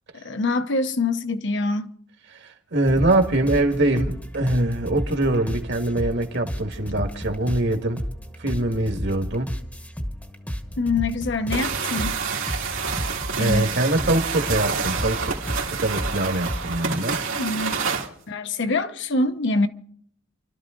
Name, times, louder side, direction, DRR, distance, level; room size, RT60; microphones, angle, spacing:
voice 1, 0.1-1.9 10.8-12.2 13.4-13.7 17.3-17.8 18.3-19.7, left 3 dB, 60° left, 0.8 m, -25 dB
voice 2, 2.4-8.0 8.4-9.5 13.4-15.3 15.7-17.2, right 1 dB, 55° right, 1.7 m, -23 dB
sound 1, 2.9-16.8, equal, 10° left, 1.0 m, -33 dB
sound 2, 11.5-18.1, right 5 dB, 80° right, 2.2 m, -28 dB
29.0 x 12.5 x 3.8 m
head